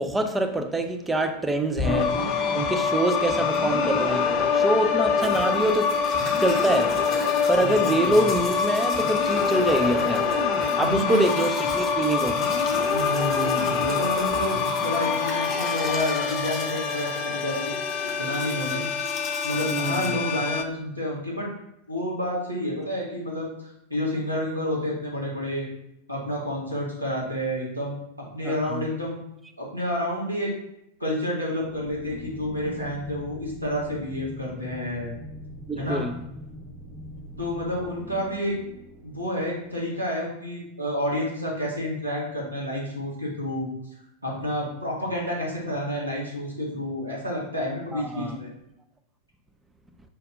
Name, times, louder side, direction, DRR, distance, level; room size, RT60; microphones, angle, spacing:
voice 1, 0.0-2.2 2.5-6.0 6.4-7.0 7.5-10.3 10.8-12.4 19.7-20.2 28.4-28.8 35.7-36.2 47.9-48.4, right 1 dB, 10° right, 6 dB, 0.5 m, -25 dB
sound 1, 1.8-20.6, left 5 dB, 40° left, 0.5 m, -25 dB
Domestic sounds home sounds, 5.2-20.1, left 2 dB, 25° left, 1.1 m, -41 dB
voice 2, 7.6-8.2 10.8-11.2 12.9-17.6 18.2-18.8 19.4-21.5 21.9-25.7 26.1-27.9 28.3-29.2 29.6-30.5 31.0-35.1 35.8-36.0 37.4-38.6 39.0-43.7 44.2-48.5, equal, 85° right, -4 dB, 1.4 m, -29 dB
sound 2, 31.5-39.8, equal, 25° right, 1.4 m, -42 dB
5.0 x 4.1 x 2.5 m, 0.81 s
figure-of-eight pair, 90°, 0 cm